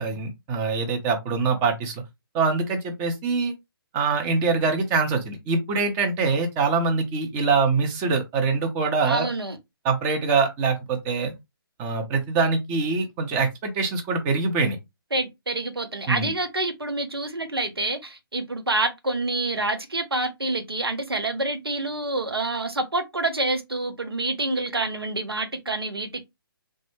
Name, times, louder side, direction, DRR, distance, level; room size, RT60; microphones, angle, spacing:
voice 1, 0.0-2.0 2.3-3.5 3.9-9.3 9.8-11.3 11.8-14.8 16.1-16.3, right 4 dB, 15° right, 0.5 m, -24 dB
voice 2, 9.1-9.6 15.1-26.2, right 2 dB, 90° right, 0.6 m, -27 dB
3.2 x 2.0 x 3.0 m
figure-of-eight pair, 140°, 12 cm